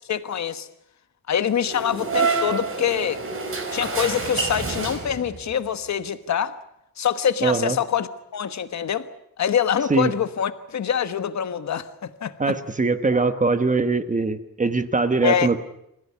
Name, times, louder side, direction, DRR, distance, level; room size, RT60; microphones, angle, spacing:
voice 1, 0.1-0.7 1.3-3.2 3.7-6.6 7.0-9.1 9.4-12.5 15.2-15.5, left 8 dB, 55° left, 11 dB, 1.3 m, -25 dB
sound 1, 1.6-5.5, right 4 dB, 40° right, 4.9 m, -27 dB
voice 2, 7.4-7.8 9.9-10.1 12.4-15.6, right 3 dB, 20° right, 10 dB, 1.1 m, -22 dB
27.5 x 16.0 x 10.0 m, 0.82 s
wide cardioid pair, 175°, 34 cm